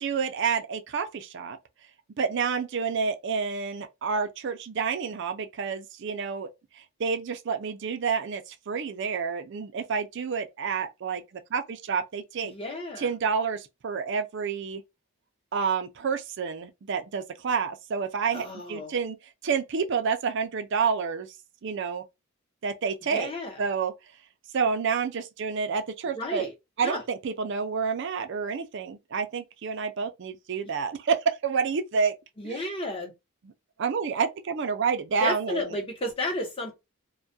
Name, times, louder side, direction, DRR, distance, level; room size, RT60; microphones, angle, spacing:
voice 1, 0.0-1.6 2.2-6.5 7.0-12.5 13.0-14.8 15.5-19.2 19.4-21.3 21.6-22.0 22.6-23.3 23.6-23.9 24.5-26.5 26.8-32.1 32.4-32.6 33.8-35.6, right 5 dB, 55° right, 0.4 m, -29 dB
voice 2, 12.4-13.1 18.3-18.9 23.1-23.6 26.0-26.5 26.8-27.0 30.6-30.7 32.4-33.1 35.2-36.8, left 2 dB, 25° left, 0.8 m, -32 dB
2.3 x 2.1 x 2.5 m
head